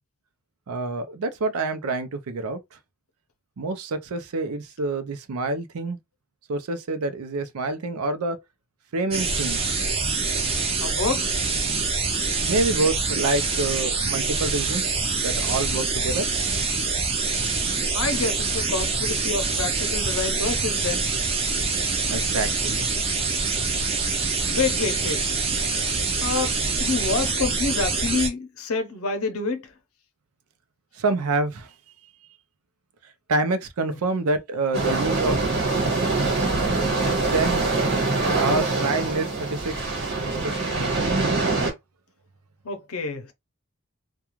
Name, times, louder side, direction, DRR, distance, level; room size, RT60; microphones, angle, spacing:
voice 1, 0.7-2.6 3.6-6.0 6.5-8.4 8.9-9.6 12.5-15.0 15.2-16.3 22.1-22.9 31.0-31.7 33.3-35.4 37.3-37.7 38.3-41.0, right 3 dB, 85° right, 0.5 m, -27 dB
sound 1, 9.1-28.3, right 4 dB, 25° right, 0.4 m, -25 dB
voice 2, 10.8-11.3 17.9-21.1 24.5-25.3 26.2-29.7 42.6-43.3, left 4 dB, 75° left, 0.7 m, -28 dB
sound 2, 34.7-41.7, right 3 dB, 50° right, 1.1 m, -24 dB
2.4 x 2.3 x 2.9 m
head